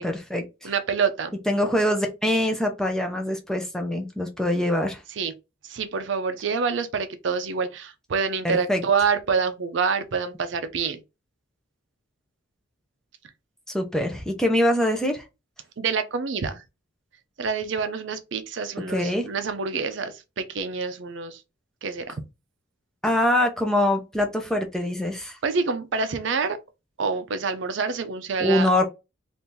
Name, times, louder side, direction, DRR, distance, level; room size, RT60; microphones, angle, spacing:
voice 1, 0.0-0.7 1.5-5.0 8.4-8.8 13.7-15.2 18.9-19.3 23.0-25.4 28.4-28.8, left 1 dB, 5° left, 0.5 m, -24 dB
voice 2, 0.6-1.4 5.2-5.3 5.6-11.0 15.8-16.6 17.4-21.4 21.8-22.2 25.4-26.6 27.0-28.7, right 5 dB, 65° right, 0.5 m, -27 dB
2.7 x 2.5 x 3.6 m
head